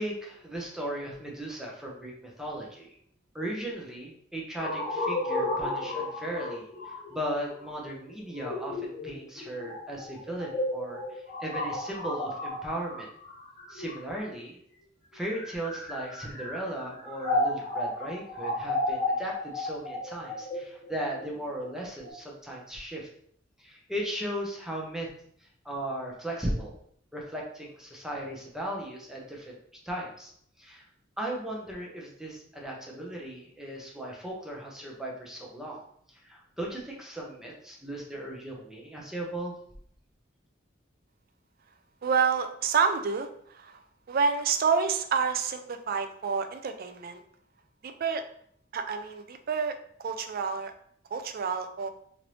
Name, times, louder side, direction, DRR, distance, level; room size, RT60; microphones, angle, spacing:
voice 1, 0.0-2.9 3.3-13.1 13.7-14.6 15.1-23.1 23.6-25.1 25.4-26.8 27.1-29.6 29.8-30.3 30.6-30.8 31.2-39.6, right 1 dB, 5° right, -2 dB, 0.6 m, -37 dB
sound 1, 4.6-14.4 15.2-22.1, left 1 dB, 40° left, 1.3 m, -33 dB
voice 2, 42.0-43.8 44.1-47.2 47.8-48.2 48.7-50.7 51.1-51.9, right 6 dB, 50° right, 7 dB, 0.4 m, -28 dB
3.1 x 2.6 x 3.0 m, 0.65 s
head